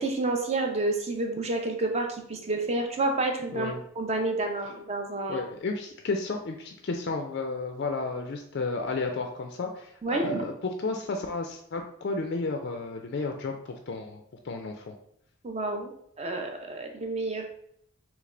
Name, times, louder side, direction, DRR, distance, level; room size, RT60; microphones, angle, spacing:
voice 1, 0.0-5.5 10.0-10.5 15.4-15.9 16.2-17.4, right 2 dB, 30° right, 3 dB, 0.5 m, -29 dB
voice 2, 5.3-10.5 10.8-13.5 13.9-14.2 14.4-14.9, left 3 dB, 50° left, 3 dB, 0.4 m, -32 dB
3.3 x 3.1 x 3.7 m, 0.70 s
head